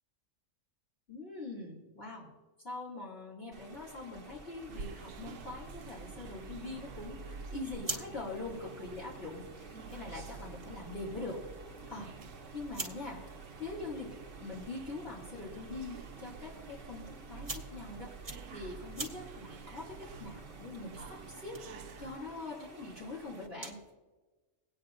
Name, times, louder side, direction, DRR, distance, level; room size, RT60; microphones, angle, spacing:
voice 1, 1.1-2.3 2.6-11.4 11.9-12.1 12.5-13.2 13.6-14.1 14.4-18.1 18.5-23.8, left 2 dB, 50° left, -7 dB, 2.8 m, -43 dB
sound 1, 3.5-23.5, right 3 dB, 45° right, 1.5 m, -53 dB
sound 2, 4.7-22.2, right 5 dB, 90° right, 1.1 m, -49 dB
sound 3, 7.5-23.9, right 3 dB, 25° right, 1.5 m, -49 dB
22.0 x 9.3 x 2.6 m, 1.2 s
omnidirectional pair, 1.3 m